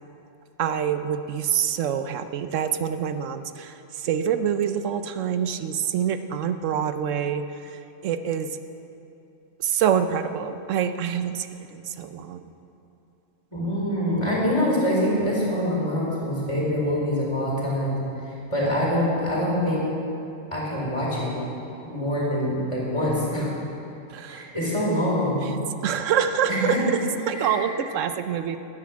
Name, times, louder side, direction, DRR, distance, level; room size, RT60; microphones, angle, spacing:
voice 1, 0.6-8.6 9.6-12.5 24.1-24.5 25.4-27.0 27.3-28.6, right 8 dB, 85° right, 10 dB, 1.0 m, -26 dB
voice 2, 13.5-17.9 18.5-19.8 20.5-21.3 21.8-23.5 24.3-25.4 26.5-26.8 27.3-27.7, equal, 25° left, -6 dB, 4.6 m, -25 dB
13.5 x 11.0 x 7.4 m, 2.8 s
omnidirectional pair, 1.3 m